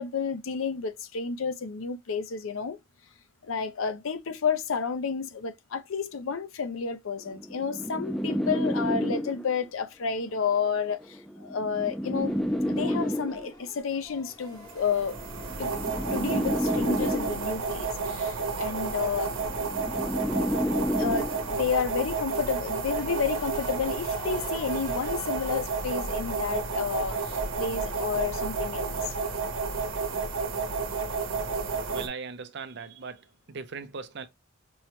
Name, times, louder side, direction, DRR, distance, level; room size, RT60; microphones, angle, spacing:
voice 1, 0.0-2.8 3.4-12.4 12.7-15.2 15.6-15.7 16.1-19.3 21.0-29.2, left 6 dB, 90° left, 0.5 m, -31 dB
sound 1, 7.3-9.7 10.7-13.7 14.7-17.7 18.7-21.7, equal, ahead, 0.4 m, -30 dB
sound 2, 12.1-15.5 15.9-21.9 22.4-26.6 27.1-27.4, left 2 dB, 20° left, 0.9 m, -49 dB
sound 3, 14.6-32.1, right 4 dB, 90° right, 0.9 m, -31 dB
voice 2, 31.9-34.3, right 5 dB, 60° right, 0.5 m, -39 dB
5.3 x 2.2 x 2.9 m
head